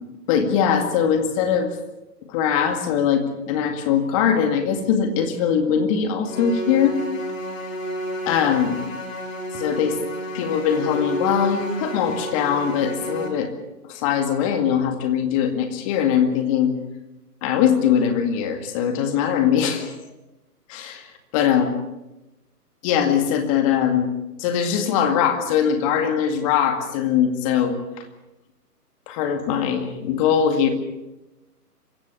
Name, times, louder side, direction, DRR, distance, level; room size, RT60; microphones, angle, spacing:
voice 1, 0.3-1.7 2.3-7.0 8.3-8.8 9.5-10.0 10.3-13.5 13.9-16.7 17.4-19.9 20.7-21.1 21.3-21.7 22.8-24.1 24.4-27.8 29.1-30.7, left 8 dB, 20° left, 6 dB, 2.1 m, -21 dB
sound 1, 6.3-13.3, equal, 55° left, 4.8 m, -31 dB
26.5 x 16.0 x 6.9 m, 0.99 s
figure-of-eight pair, 145°, 48 cm